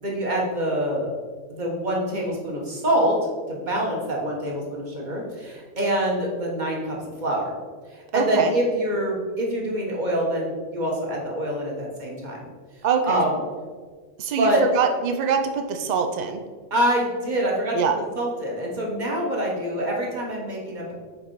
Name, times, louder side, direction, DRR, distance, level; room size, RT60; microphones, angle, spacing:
voice 1, 0.0-1.1 1.5-7.5 7.9-12.5 13.1-13.4 14.4-14.6 16.7-17.8 18.1-20.9, right 1 dB, 35° right, -2 dB, 1.3 m, -25 dB
voice 2, 8.1-8.5 12.8-13.2 14.2-16.4 17.7-18.0, right 6 dB, 80° right, 5 dB, 0.3 m, -23 dB
5.4 x 4.2 x 4.6 m, 1.5 s
omnidirectional pair, 1.4 m